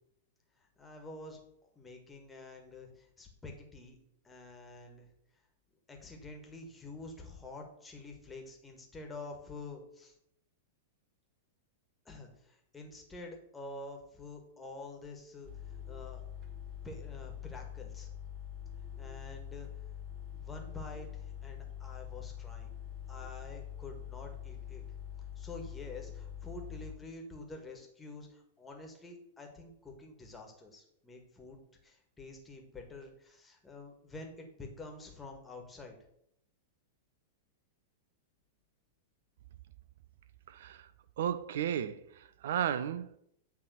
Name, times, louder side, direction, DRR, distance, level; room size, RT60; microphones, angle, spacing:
voice 1, 0.8-1.4 1.7-4.0 4.2-5.1 5.9-10.1 12.0-16.2 16.8-18.1 19.0-19.7 20.3-22.7 23.1-24.8 25.3-31.6 31.8-36.0, left 2 dB, 10° left, 1 dB, 1.7 m, -48 dB
sound 1, 15.4-26.9, left 9 dB, 30° right, 1.5 m, -44 dB
voice 2, 40.5-40.8 41.2-43.1, right 9 dB, 55° right, 14 dB, 0.5 m, -34 dB
9.1 x 3.5 x 6.4 m, 0.75 s
figure-of-eight pair, 95°, 0 cm